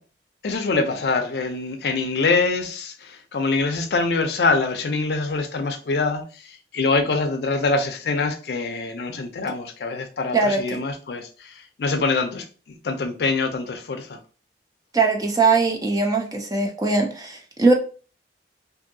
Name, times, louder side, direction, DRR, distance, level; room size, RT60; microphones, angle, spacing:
voice 1, 0.4-6.2 6.7-12.4 12.8-14.2, left 3 dB, 60° left, 0.4 m, -24 dB
voice 2, 10.3-10.8 14.9-17.7, right 3 dB, 20° right, 0.4 m, -20 dB
2.7 x 2.6 x 2.6 m
head